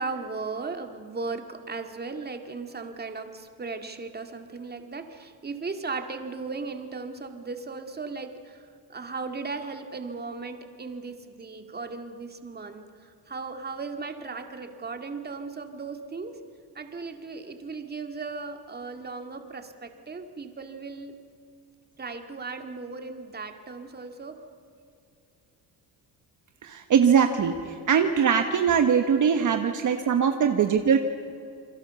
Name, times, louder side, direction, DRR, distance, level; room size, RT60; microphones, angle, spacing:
voice 1, 0.0-16.4 16.7-21.2 22.0-24.4, right 4 dB, 25° right, 6 dB, 2.1 m, -37 dB
voice 2, 26.6-31.0, right 7 dB, 50° right, 6 dB, 1.3 m, -22 dB
28.0 x 22.0 x 7.0 m, 2.5 s
cardioid pair, 120°, 39 cm